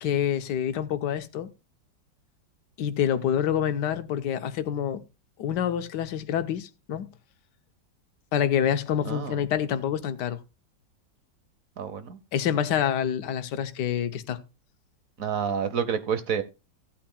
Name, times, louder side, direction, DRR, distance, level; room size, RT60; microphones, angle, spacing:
voice 1, 0.0-1.5 2.8-5.0 5.4-7.1 8.3-10.4 12.3-14.4, left 9 dB, 70° left, 1.4 m, -27 dB
voice 2, 9.1-9.4 11.8-12.2 15.2-16.4, right 7 dB, 55° right, 1.1 m, -28 dB
16.0 x 8.7 x 2.2 m
omnidirectional pair, 2.0 m